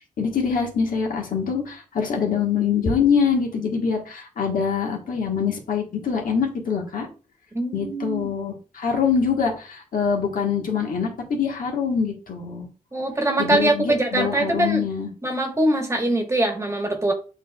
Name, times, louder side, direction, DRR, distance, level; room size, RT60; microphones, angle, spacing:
voice 1, 0.2-7.1 7.7-12.7 13.4-15.1, left 6 dB, 75° left, 1 dB, 1.3 m, -24 dB
voice 2, 7.5-8.3 12.9-14.9 15.2-17.1, right 1 dB, 20° right, 3 dB, 1.3 m, -22 dB
8.0 x 2.8 x 2.3 m, 0.35 s
cardioid pair, 70°, 15 cm